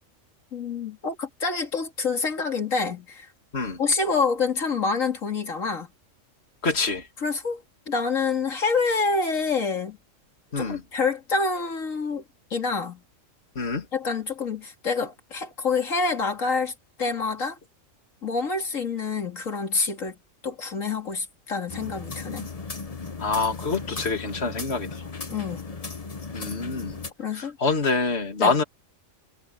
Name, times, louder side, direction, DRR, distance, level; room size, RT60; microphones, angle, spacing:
voice 1, 0.5-3.3 3.8-5.9 7.2-10.0 10.6-12.2 12.5-13.0 13.9-16.7 17.0-17.6 18.2-20.2 20.4-22.5 25.3-25.6 27.2-27.6 28.4-28.6, left 4 dB, 80° left, 2.7 m, -27 dB
voice 2, 6.6-7.1 10.5-10.8 13.6-13.8 23.2-25.0 26.3-27.0 27.3-28.6, left 4 dB, 55° left, 2.7 m, -26 dB
sound 1, 21.7-27.1, left 4 dB, 30° left, 1.2 m, -36 dB
omnidirectional pair, 1.3 m